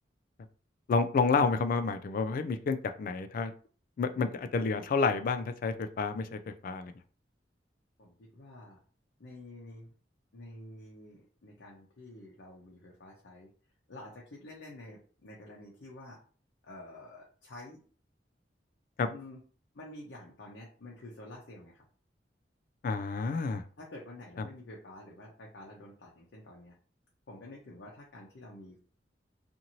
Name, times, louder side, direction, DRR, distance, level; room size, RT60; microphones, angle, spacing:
voice 1, 0.9-3.5 4.0-6.9 19.0-19.1 22.8-23.6, left 4 dB, 50° left, 9 dB, 0.3 m, -29 dB
voice 2, 8.0-8.8 9.2-9.9 10.3-13.5 13.9-16.2 16.6-17.8 19.1-19.4 19.7-21.8 23.8-26.7 27.3-28.8, left 1 dB, 90° left, -3 dB, 0.7 m, -49 dB
2.6 x 2.6 x 2.9 m, 0.42 s
head